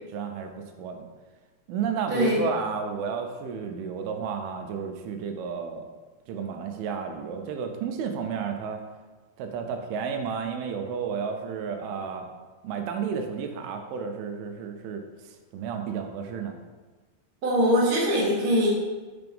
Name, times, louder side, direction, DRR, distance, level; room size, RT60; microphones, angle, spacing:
voice 1, 0.1-0.5 0.8-1.1 1.7-5.9 6.3-8.8 9.4-12.3 12.6-16.6, right 6 dB, 85° right, 5 dB, 2.5 m, -32 dB
voice 2, 17.4-18.7, equal, 40° right, -6 dB, 1.5 m, -22 dB
6.7 x 3.4 x 5.2 m, 1.3 s
omnidirectional pair, 4.4 m